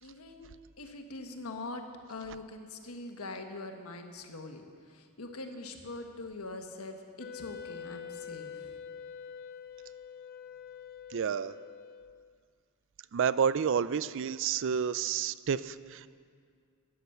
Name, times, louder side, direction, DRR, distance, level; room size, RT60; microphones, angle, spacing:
voice 1, 0.0-0.5 0.8-1.8 2.1-4.6 4.9-8.7, left 2 dB, 80° left, 5 dB, 1.4 m, -43 dB
Wind instrument woodwind instrument, 7.2-12.4, left 7 dB, 45° left, 0.6 m, -45 dB
voice 2, 11.1-11.5 13.1-16.1, right 7 dB, 60° right, 16 dB, 0.4 m, -30 dB
13.5 x 9.3 x 7.9 m, 2.1 s
head